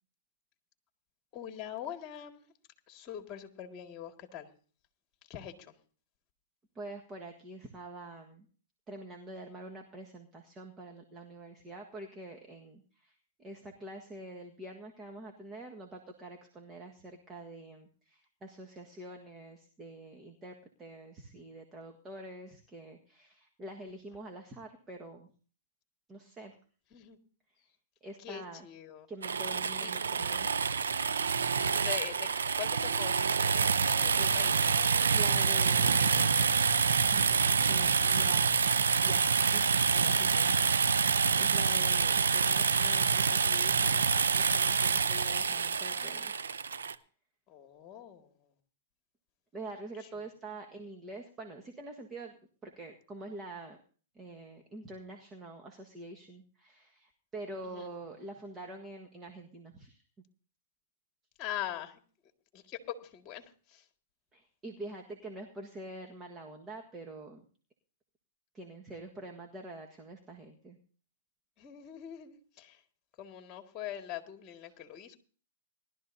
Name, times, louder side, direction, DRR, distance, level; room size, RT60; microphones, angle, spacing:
voice 1, 1.3-2.4 2.9-4.5 5.3-5.5 26.9-27.2 28.2-29.1 29.8-29.9 31.6-32.3 32.6-33.2 33.9-34.5 47.5-48.3 57.7-57.9 61.4-61.9 62.5-63.4 63.7-63.8 71.6-72.8 73.2-75.2, left 10 dB, 30° left, 5 dB, 2.0 m, -42 dB
voice 2, 6.7-8.5 8.9-25.3 26.1-26.6 28.0-28.7 29.1-30.5 35.1-36.3 37.0-38.7 39.0-39.2 39.5-46.4 49.5-52.4 52.6-53.8 54.1-60.0 64.3-67.4 68.5-70.8 74.6-74.8, right 2 dB, 20° right, 2 dB, 1.5 m, -46 dB
sound 1, 29.2-46.9, right 6 dB, 90° right, 0.7 m, -27 dB
19.5 x 12.0 x 2.7 m, 0.41 s
hypercardioid pair, 125°, 0 cm